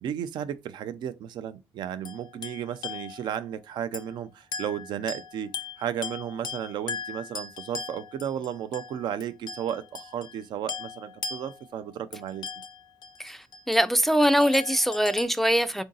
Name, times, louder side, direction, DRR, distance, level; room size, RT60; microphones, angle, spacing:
voice 1, 0.0-5.5 5.8-12.5, right 9 dB, 75° right, 0.5 m, -34 dB
sound 1, 2.0-3.5 3.9-4.2 4.5-10.4 10.7-13.8 14.2-15.2, left 5 dB, 70° left, 0.5 m, -39 dB
voice 2, 13.7-15.8, equal, 5° left, 0.4 m, -22 dB
3.8 x 2.6 x 3.8 m
cardioid pair, 85°, 8 cm